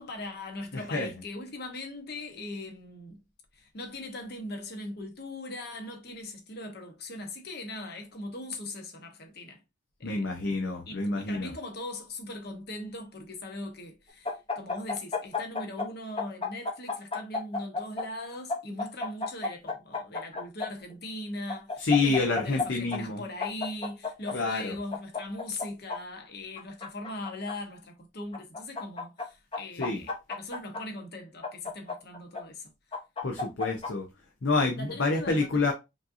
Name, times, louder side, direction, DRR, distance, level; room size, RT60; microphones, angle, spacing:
voice 1, 0.0-3.2 3.5-9.6 10.0-10.3 10.9-32.7 34.8-35.7, left 1 dB, 50° left, 1.0 m, -40 dB
voice 2, 0.7-1.1 10.0-11.5 21.8-23.2 24.3-24.7 29.8-30.0 33.2-34.1 34.4-35.7, left 3 dB, 65° left, 0.7 m, -28 dB
sound 1, 14.2-15.9 16.2-18.0 18.5-20.7 21.5-22.6 22.9-23.0 23.4-24.3 24.9-26.0 26.6-27.5 28.3-29.2 29.5-30.8 31.4-32.4 32.9-33.9, left 3 dB, 25° left, 0.8 m, -32 dB
5.1 x 2.7 x 2.6 m
head